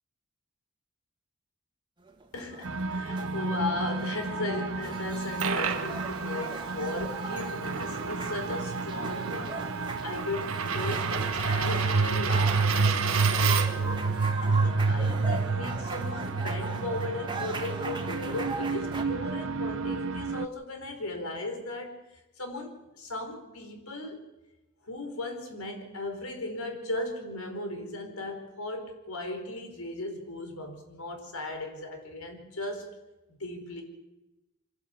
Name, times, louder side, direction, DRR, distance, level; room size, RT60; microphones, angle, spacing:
sound 1, 2.1-19.0, right 3 dB, 20° right, 1.8 m, -39 dB
voice 1, 2.3-22.0 22.4-24.2 24.8-32.9 33.3-33.8, left 2 dB, 85° left, 4 dB, 4.7 m, -37 dB
sound 2, 2.6-20.5, right 4 dB, 60° right, 0.8 m, -30 dB
Coin (dropping), 5.0-13.9, right 6 dB, 85° right, 1.8 m, -34 dB
26.0 x 11.5 x 8.5 m, 1.0 s
head